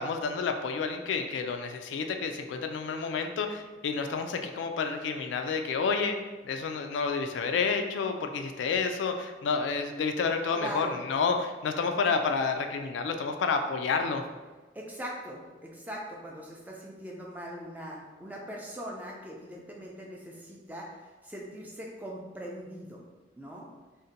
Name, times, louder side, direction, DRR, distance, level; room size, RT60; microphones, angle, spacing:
voice 1, 0.0-6.2 6.4-14.2, left 5 dB, 85° left, 5 dB, 0.3 m, -30 dB
voice 2, 10.5-11.0 14.7-23.0 23.4-23.7, equal, 10° right, -2 dB, 0.3 m, -41 dB
2.6 x 2.1 x 3.8 m, 1.2 s
head